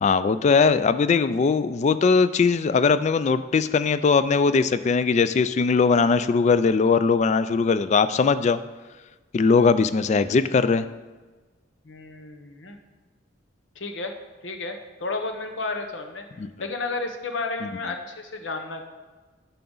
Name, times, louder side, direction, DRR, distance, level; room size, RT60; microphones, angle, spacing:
voice 1, 0.0-8.6 9.3-10.8 16.4-16.5, left 5 dB, 40° left, 13 dB, 0.3 m, -20 dB
voice 2, 11.8-12.8 13.8-14.1 14.4-16.2 16.6-18.8, left 3 dB, 85° left, 6 dB, 0.9 m, -32 dB
11.0 x 5.7 x 3.9 m, 1.3 s
head